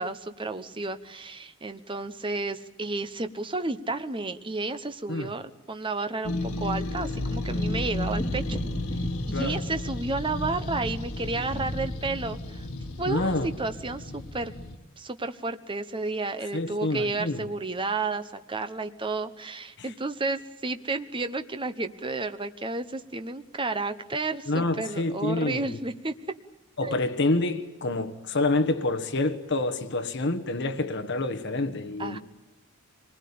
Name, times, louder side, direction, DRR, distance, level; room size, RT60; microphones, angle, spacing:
voice 1, 0.0-8.6 9.3-12.6 13.0-14.5 15.0-26.1 26.8-27.0 32.0-32.2, right 3 dB, 25° right, 9 dB, 1.0 m, -32 dB
sound 1, 6.2-14.8, left 1 dB, 80° left, 1.7 m, -33 dB
sound 2, 6.9-13.3, equal, 15° left, 5.2 m, -39 dB
voice 2, 13.1-13.5 16.5-17.4 19.8-19.9 24.5-25.8 26.8-32.2, left 2 dB, 55° left, 9 dB, 1.4 m, -27 dB
25.5 x 20.0 x 8.6 m, 1.1 s
head